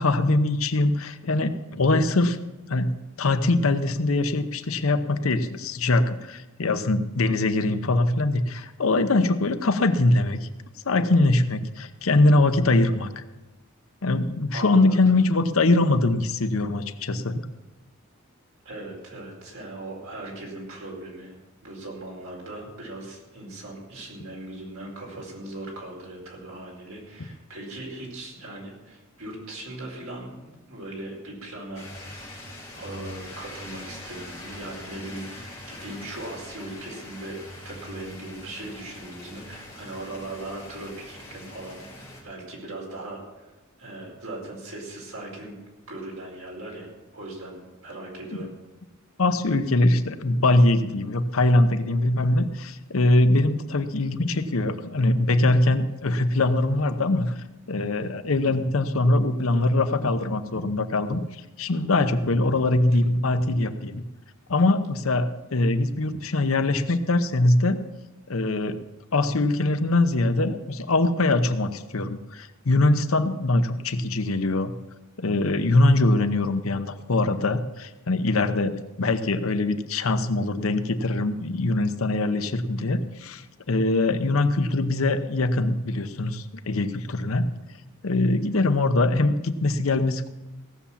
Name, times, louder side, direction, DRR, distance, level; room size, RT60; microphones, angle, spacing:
voice 1, 0.0-2.4 2.7-10.5 10.8-13.2 14.0-17.4 49.2-57.3 57.7-64.0 64.5-67.8 68.3-68.8 69.1-74.7 75.2-87.5 88.0-90.3, left 2 dB, 80° left, 9 dB, 0.8 m, -22 dB
voice 2, 14.5-15.0 18.6-21.3 21.6-32.2 32.7-45.5 45.9-46.9 47.1-48.5, right 2 dB, 85° right, -2 dB, 4.6 m, -39 dB
sound 1, 31.7-42.2, left 1 dB, 15° left, 4.8 m, -42 dB
16.5 x 7.1 x 7.2 m, 1.0 s
head